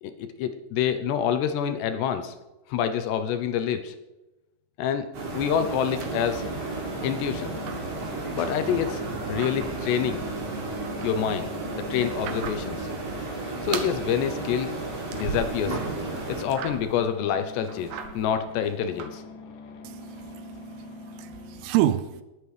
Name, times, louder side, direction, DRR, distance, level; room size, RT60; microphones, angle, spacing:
voice 1, 0.0-2.3 2.7-3.9 4.8-5.1 5.3-6.5 7.0-7.5 8.3-9.0 9.3-10.2 11.0-12.9 13.6-14.7 15.1-15.8 16.3-19.2, left 8 dB, 75° left, 9 dB, 2.7 m, -27 dB
sound 1, 5.1-16.4, right 3 dB, 45° right, 4.7 m, -33 dB
sound 2, 5.4-6.9 7.2-8.6 9.0-10.0 10.4-12.9 13.2-14.0 14.3-15.8 16.0-17.1 17.4-19.1, right 7 dB, 70° right, 2.2 m, -39 dB
sound 3, 5.7-21.7, left 6 dB, 55° left, 2.9 m, -44 dB
voice 2, 19.8-22.2, right 12 dB, 90° right, 11 dB, 3.3 m, -28 dB
21.0 x 9.0 x 5.0 m, 1.0 s
omnidirectional pair, 5.7 m